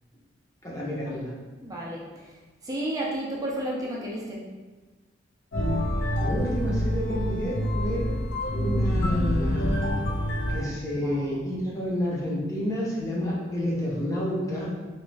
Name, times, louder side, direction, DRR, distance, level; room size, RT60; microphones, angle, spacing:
voice 1, 0.6-1.3 6.2-8.1 8.5-10.0 10.5-14.7, equal, 20° left, -5 dB, 0.8 m, -30 dB
voice 2, 1.6-2.3 2.6-4.5 11.0-11.3, right 1 dB, 20° right, -4 dB, 0.5 m, -32 dB
sound 1, 5.5-10.6, left 1 dB, 75° left, 1.0 m, -26 dB
3.2 x 3.1 x 3.2 m, 1.3 s
head